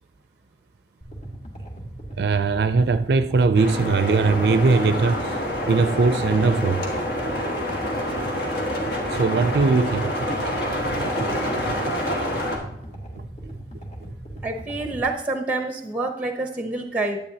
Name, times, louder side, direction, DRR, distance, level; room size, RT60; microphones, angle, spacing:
sound 1, 1.0-15.0, right 1 dB, 40° left, 1.6 m, -38 dB
voice 1, 2.2-5.4 5.7-6.8 9.1-10.6 12.0-12.3 13.4-13.5, right 4 dB, 70° right, 0.4 m, -21 dB
sound 2, 3.5-12.6, equal, 65° left, 1.6 m, -27 dB
voice 2, 14.4-17.2, right 2 dB, 10° right, 0.7 m, -27 dB
10.0 x 8.5 x 2.8 m
head